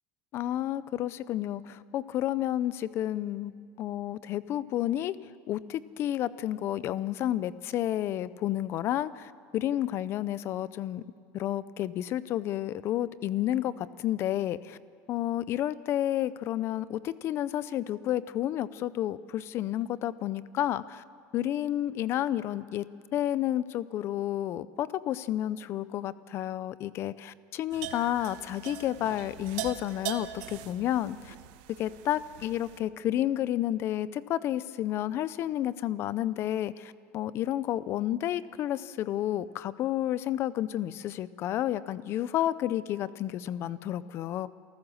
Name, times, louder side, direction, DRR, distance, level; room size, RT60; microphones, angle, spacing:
voice 1, 0.3-3.5 3.8-5.2 5.5-11.0 11.3-14.8 15.1-21.0 21.3-22.9 23.1-31.3 31.8-44.5, left 12 dB, 35° left, 17 dB, 0.5 m, -31 dB
sound 1, 27.7-32.8, right 10 dB, 55° right, 1.1 m, -41 dB
28.0 x 14.5 x 6.4 m, 2.4 s
cardioid pair, 160°, 7 cm